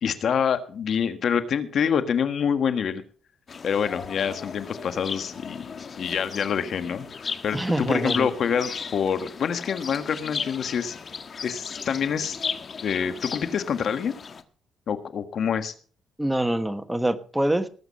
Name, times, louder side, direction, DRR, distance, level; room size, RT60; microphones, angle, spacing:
voice 1, 0.0-3.0 3.6-7.1 7.4-11.0 11.4-12.4 12.8-14.1 14.9-15.7, left 7 dB, 60° left, 10 dB, 1.5 m, -26 dB
sound 1, 3.5-14.4, left 5 dB, 45° left, 1.3 m, -36 dB
voice 2, 7.5-8.3 16.2-17.7, right 1 dB, 5° right, 10 dB, 1.2 m, -25 dB
19.0 x 8.1 x 5.4 m, 0.42 s
cardioid pair, 90°, 0 cm